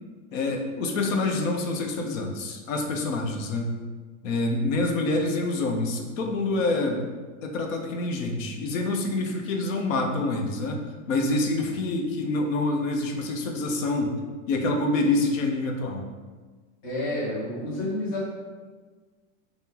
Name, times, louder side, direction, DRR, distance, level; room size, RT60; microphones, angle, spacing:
voice 1, 0.3-3.7 4.2-7.0 7.4-10.8 11.1-14.2 14.5-16.0, left 2 dB, 70° left, 3 dB, 0.6 m, -26 dB
voice 2, 16.8-18.3, left 1 dB, 20° left, -7 dB, 0.4 m, -29 dB
2.8 x 2.0 x 3.6 m, 1.4 s
supercardioid pair, 170°, 41 cm